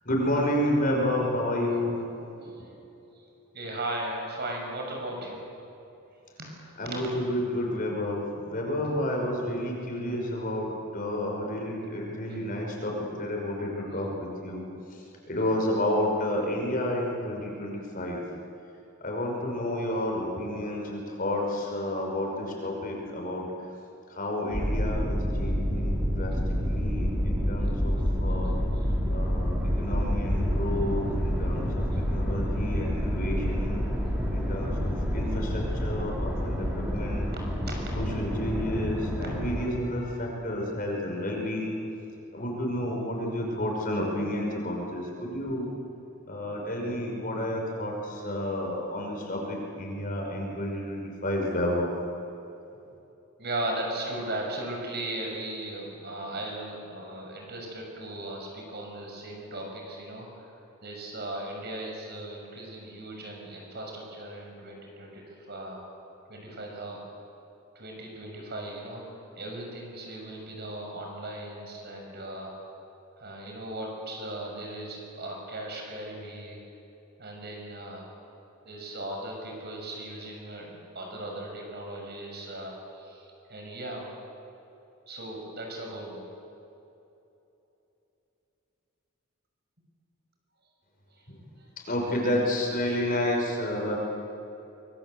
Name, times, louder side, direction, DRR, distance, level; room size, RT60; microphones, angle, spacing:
voice 1, 0.0-2.5 6.8-14.6 14.9-18.2 19.0-23.5 24.1-28.5 29.1-31.8 32.1-33.8 34.3-37.3 37.9-41.8 42.3-45.7 46.3-51.9 91.9-94.0, left 1 dB, 40° left, 0 dB, 5.5 m, -30 dB
voice 2, 3.5-5.4 6.4-7.0 12.3-12.4 13.8-14.1 28.4-28.5 28.8-29.0 31.9-32.3 37.7-37.8 53.4-65.8 66.3-67.0 67.7-69.0 69.3-72.5 73.2-76.6 77.2-78.1 78.6-84.0 85.1-86.3 91.1-91.2, right 1 dB, 50° right, 0 dB, 6.3 m, -37 dB
sound 1, 24.5-39.7, equal, 5° right, 3.9 m, -28 dB
25.0 x 23.0 x 7.9 m, 2.9 s
head